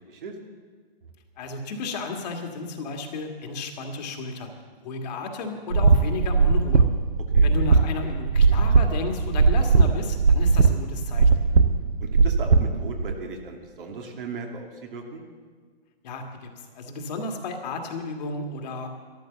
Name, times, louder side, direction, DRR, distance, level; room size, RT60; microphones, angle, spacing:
voice 1, 1.4-4.5 4.8-6.9 7.4-11.3 16.0-16.5 16.8-18.9, left 3 dB, 40° left, 3 dB, 1.9 m, -33 dB
sound 1, 5.7-13.1, right 4 dB, 75° right, 1.1 m, -19 dB
voice 2, 12.0-15.2, right 4 dB, 55° right, 2 dB, 2.4 m, -37 dB
13.0 x 11.5 x 7.0 m, 1.5 s
hypercardioid pair, 130°, 32 cm